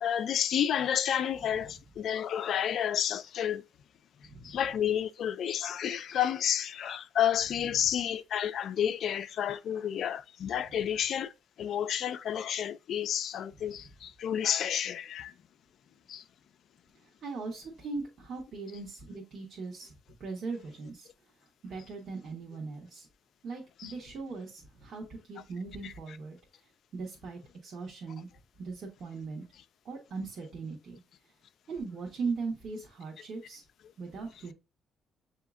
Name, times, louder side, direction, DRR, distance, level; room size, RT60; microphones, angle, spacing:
voice 1, 0.0-3.6 4.4-11.3 11.6-15.3 16.1-16.2 23.8-23.9 25.8-25.9, left 9 dB, 70° left, 0.3 m, -30 dB
voice 2, 17.0-21.1 21.6-23.1 23.4-26.4 26.9-28.3 28.6-29.4 29.8-31.0 31.7-33.6 34.0-34.5, right 4 dB, 60° right, 1.1 m, -39 dB
7.0 x 2.8 x 2.4 m
cardioid pair, 90°, 0 cm